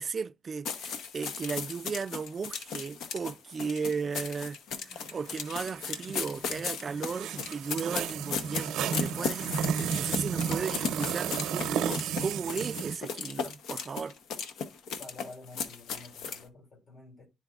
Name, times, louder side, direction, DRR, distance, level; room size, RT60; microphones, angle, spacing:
voice 1, 0.0-4.6 4.8-14.2, right 5 dB, 35° right, 0.3 m, -35 dB
sound 1, 0.6-16.4, left 6 dB, 80° left, 0.8 m, -36 dB
sound 2, 5.0-13.0, right 7 dB, 90° right, 0.7 m, -33 dB
voice 2, 15.0-17.3, left 2 dB, 55° left, 3.0 m, -49 dB
11.5 x 4.0 x 2.4 m
cardioid pair, 110°, 0 cm